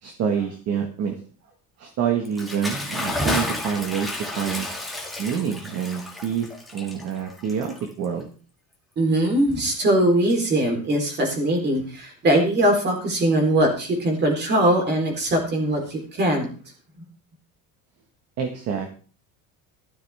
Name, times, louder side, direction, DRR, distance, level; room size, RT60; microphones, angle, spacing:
voice 1, 0.0-1.1 1.8-4.1 4.4-4.7 5.2-8.3 18.4-18.9, right 7 dB, 45° right, 4 dB, 1.7 m, -27 dB
Bathtub (filling or washing) / Splash splatter, 2.2-8.2, left 1 dB, ahead, 2.2 m, -31 dB
voice 2, 9.0-16.5, right 1 dB, 30° right, 2 dB, 4.0 m, -21 dB
14.5 x 13.0 x 3.6 m, 0.39 s
cardioid pair, 175°, 35 cm